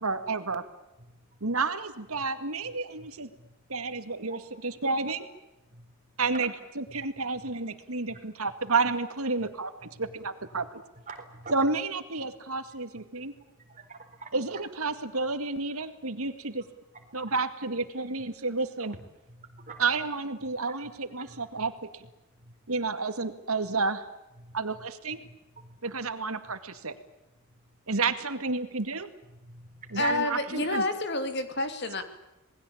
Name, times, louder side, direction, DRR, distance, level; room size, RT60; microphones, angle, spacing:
voice 1, 0.0-0.6 1.4-3.3 3.7-5.2 6.2-6.5 6.8-10.8 11.5-13.3 14.3-16.6 17.1-18.9 19.8-22.0 22.7-24.0 24.5-25.2 25.8-27.0 27.9-29.1 29.9-30.8, right 3 dB, 80° right, 10 dB, 2.2 m, -30 dB
voice 2, 1.1-1.5 2.2-2.3 2.6-3.5 4.3-4.4 5.7-6.0 6.3-6.5 6.9-7.1 7.4-7.5 8.1-8.2 9.8-10.1 10.5-10.7 11.1-11.7 12.9-14.3 16.9-17.3 18.9-19.9 20.6-20.9 21.3-21.7 22.3-22.6 24.4-24.9 25.2-25.8 27.5-27.7 29.3-30.0, right 3 dB, 35° right, 5 dB, 4.4 m, -48 dB
voice 3, 30.0-32.0, left 2 dB, 50° left, 8 dB, 2.9 m, -29 dB
27.5 x 20.5 x 8.8 m, 0.95 s
head